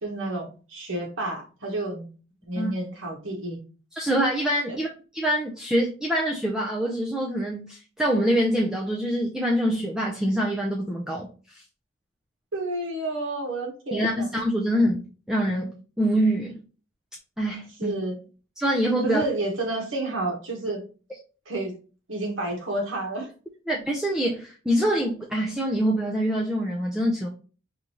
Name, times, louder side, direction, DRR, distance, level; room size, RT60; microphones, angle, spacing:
voice 1, 0.0-2.1 2.5-3.6 12.5-14.3 17.8-18.2 19.0-20.8 21.5-21.7 22.1-23.3, right 2 dB, 80° right, 1 dB, 1.3 m, -30 dB
voice 2, 4.0-4.9 5.1-11.6 13.9-15.0 15.3-16.6 17.4-18.0 18.6-19.2 23.7-27.3, equal, 5° right, -2 dB, 0.4 m, -25 dB
4.9 x 2.6 x 2.9 m, 0.37 s
head